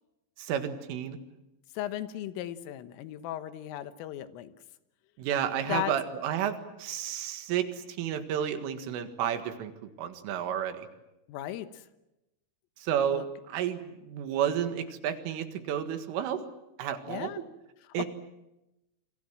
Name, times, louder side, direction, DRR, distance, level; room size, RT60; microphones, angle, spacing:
voice 1, 0.4-1.2 5.2-10.9 12.8-16.4 16.8-17.4 17.9-18.1, right 9 dB, 80° right, 8 dB, 4.3 m, -31 dB
voice 2, 1.8-4.5 5.7-5.9 11.3-11.8 13.1-13.3 17.1-17.4 18.0-18.1, left 13 dB, 85° left, 11 dB, 3.8 m, -36 dB
28.5 x 24.0 x 7.6 m, 0.95 s
omnidirectional pair, 5.7 m